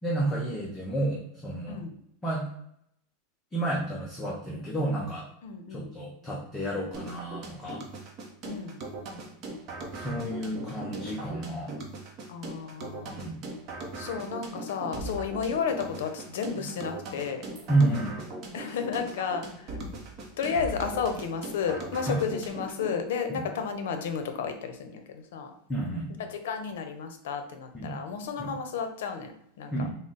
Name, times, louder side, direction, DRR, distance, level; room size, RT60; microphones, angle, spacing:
voice 1, 0.0-1.8 2.2-2.5 3.5-5.3 5.7-7.8 9.9-11.7 13.0-13.4 17.7-18.2 22.1-22.2 23.3-23.5 25.7-26.1 27.7-27.9 28.5-28.6 29.7-29.9, right 2 dB, 10° left, -4 dB, 0.5 m, -30 dB
voice 2, 5.4-5.9 8.4-8.8 12.3-13.2 14.0-17.4 18.5-19.8 20.4-25.5 26.2-29.9, left 6 dB, 80° left, 6 dB, 0.6 m, -32 dB
sound 1, 6.9-22.9, right 2 dB, 35° right, 0.6 m, -39 dB
3.7 x 2.0 x 3.8 m, 0.72 s
supercardioid pair, 170°, 0 cm